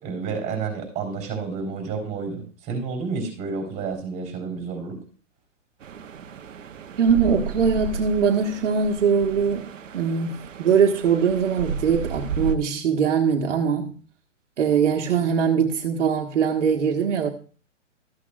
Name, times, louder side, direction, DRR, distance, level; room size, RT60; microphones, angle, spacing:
voice 1, 0.0-5.0, right 5 dB, 20° right, 3.9 m, -30 dB
sound 1, 5.8-12.6, right 6 dB, 85° right, 1.1 m, -33 dB
voice 2, 7.0-9.7 9.9-14.0 14.6-17.3, right 6 dB, 70° right, 1.5 m, -21 dB
13.5 x 8.4 x 2.5 m
hypercardioid pair, 145°, 37 cm